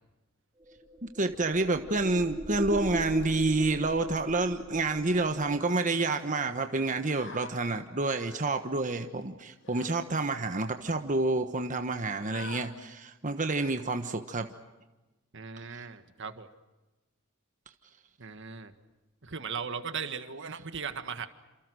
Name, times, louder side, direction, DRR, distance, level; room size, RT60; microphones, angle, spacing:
sound 1, 0.7-5.6, equal, 20° right, 3.5 m, -38 dB
voice 1, 1.0-14.5 15.7-15.8, right 2 dB, 40° right, 7 dB, 1.3 m, -29 dB
sound 2, 4.7-5.0 6.0-6.1 7.0-7.5 8.0-8.5 9.6-10.0 10.6-10.7 10.9-11.2 12.0-12.7 13.5-13.8 14.3-14.6, left 5 dB, 60° left, 3.0 m, -48 dB
voice 2, 15.3-16.5 18.2-18.7 19.2-21.3, right 6 dB, 65° right, 9 dB, 1.7 m, -38 dB
29.0 x 27.0 x 6.4 m, 1.1 s
head